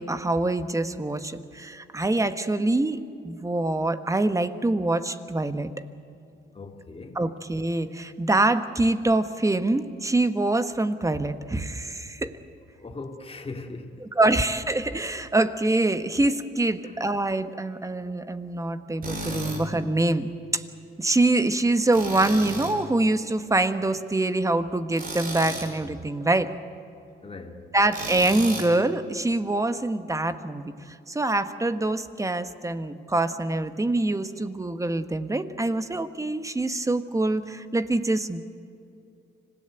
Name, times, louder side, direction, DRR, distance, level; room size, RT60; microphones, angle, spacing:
voice 1, 0.0-5.7 7.1-12.3 14.0-20.3 20.5-20.6 21.0-26.5 27.7-30.7 31.1-38.4, right 2 dB, 15° right, 1.2 m, -25 dB
voice 2, 6.5-7.2 12.8-14.1 16.8-17.0 27.2-27.7, left 3 dB, 30° left, 2.6 m, -40 dB
Tools, 19.0-19.6 21.9-22.8 24.9-25.7 27.9-28.7, right 2 dB, 50° right, 5.7 m, -33 dB
25.5 x 17.0 x 9.1 m
cardioid pair, 90°, 20 cm